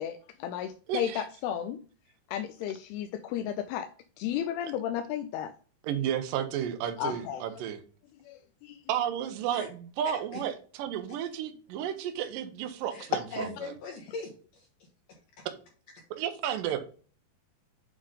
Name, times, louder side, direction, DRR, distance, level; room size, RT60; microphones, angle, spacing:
voice 1, 0.0-1.8 2.3-3.9 4.2-5.5 7.0-7.4 8.3-8.8, left 10 dB, 80° left, 6 dB, 2.4 m, -33 dB
voice 2, 0.9-1.3 5.8-7.8 8.9-13.7 16.1-16.8, right 9 dB, 85° right, 7 dB, 2.0 m, -32 dB
voice 3, 12.9-14.7 15.4-15.5, left 2 dB, 65° left, -1 dB, 2.6 m, -40 dB
8.9 x 3.7 x 3.6 m, 0.39 s
omnidirectional pair, 4.9 m